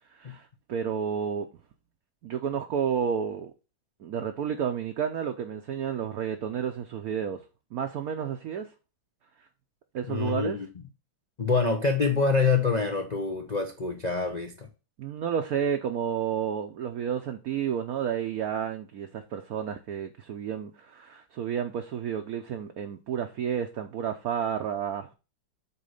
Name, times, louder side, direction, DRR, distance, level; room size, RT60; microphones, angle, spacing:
voice 1, 0.2-1.5 2.2-3.5 4.0-7.4 7.7-8.7 9.9-10.6 15.0-25.1, right 8 dB, 65° right, 0.9 m, -31 dB
voice 2, 10.1-10.7 11.4-14.7, left 4 dB, 70° left, 0.4 m, -26 dB
8.4 x 3.2 x 6.4 m
omnidirectional pair, 2.2 m